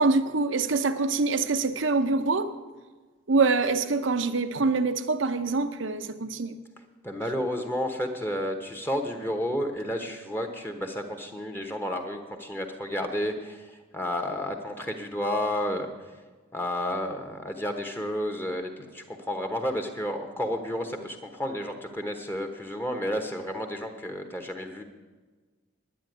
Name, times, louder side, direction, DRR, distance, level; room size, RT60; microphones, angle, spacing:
voice 1, 0.0-2.5 3.3-6.6, right 3 dB, 75° right, 10 dB, 0.8 m, -25 dB
voice 2, 7.0-15.9 16.5-24.8, equal, 10° left, 4 dB, 1.0 m, -31 dB
10.0 x 10.0 x 9.1 m, 1.3 s
head